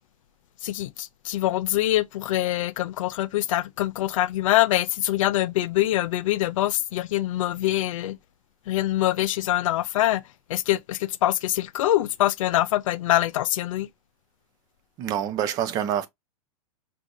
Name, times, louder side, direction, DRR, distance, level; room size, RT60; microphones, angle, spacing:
voice 1, 0.6-8.2 8.7-10.2 10.5-13.9, left 14 dB, 60° left, 0.4 m, -24 dB
voice 2, 15.0-16.1, right 10 dB, 20° right, 0.4 m, -26 dB
6.0 x 2.5 x 2.6 m
supercardioid pair, 155°, 19 cm